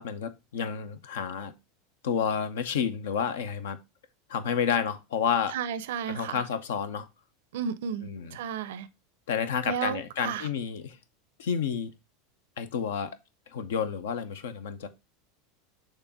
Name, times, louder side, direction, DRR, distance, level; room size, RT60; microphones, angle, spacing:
voice 1, 0.0-1.5 2.0-3.8 4.3-5.6 6.1-7.1 8.0-8.4 9.3-11.0 11.4-11.9 12.6-13.2 13.5-14.9, left 7 dB, 70° left, 0.7 m, -30 dB
voice 2, 5.5-6.4 7.5-8.9 9.7-10.5, right 8 dB, 65° right, 0.5 m, -33 dB
6.6 x 3.0 x 4.8 m
figure-of-eight pair, 85°, 0 cm